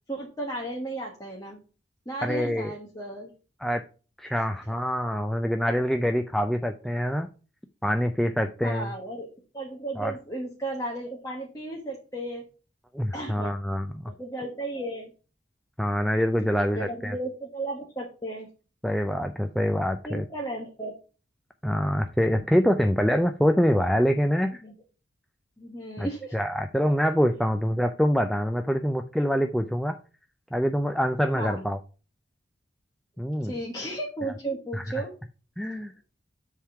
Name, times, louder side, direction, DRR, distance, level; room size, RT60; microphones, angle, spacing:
voice 1, 0.1-1.6 2.0-3.3 8.6-12.5 13.1-13.5 14.1-15.1 16.5-18.5 20.0-20.9 24.6-24.7 25.6-26.4 31.3-31.6 33.4-35.1, right 1 dB, 15° left, -1 dB, 1.2 m, -34 dB
voice 2, 2.2-2.7 3.6-3.8 4.2-7.3 7.8-8.9 10.0-10.1 12.9-13.9 15.8-17.1 18.8-20.3 21.6-24.6 26.0-26.1 26.3-30.0 30.5-31.8 33.2-33.5 34.7-34.8 35.6-35.9, equal, ahead, 6 dB, 0.3 m, -25 dB
7.3 x 3.6 x 5.7 m, 0.36 s
head